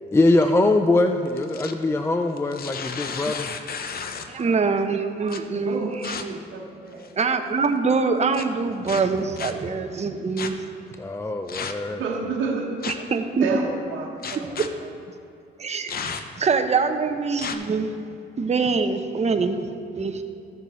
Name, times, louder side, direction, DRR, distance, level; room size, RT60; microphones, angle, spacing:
voice 1, 0.1-3.5 11.0-12.0, left 2 dB, 15° left, 6 dB, 0.4 m, -22 dB
sound 1, 1.3-1.8 2.4-4.4 5.3-5.4 6.0-6.2 6.9-7.3 8.3-8.5 8.9-9.5 10.4-10.5 11.5-11.9 12.8-13.1 14.2-14.7 15.9-16.4 17.4-17.6, left 6 dB, 50° left, 0.7 m, -33 dB
voice 2, 4.3-5.9 7.2-10.6 12.9-13.7 14.6-14.7 15.6-17.9 18.4-19.6 20.0-20.2, right 4 dB, 35° right, 6 dB, 0.8 m, -24 dB
voice 3, 5.6-7.1 11.9-12.8 13.4-14.5 14.8-14.9, right 4 dB, 75° right, -2 dB, 1.2 m, -30 dB
15.0 x 6.6 x 3.1 m, 2.7 s
cardioid pair, 90°, 20 cm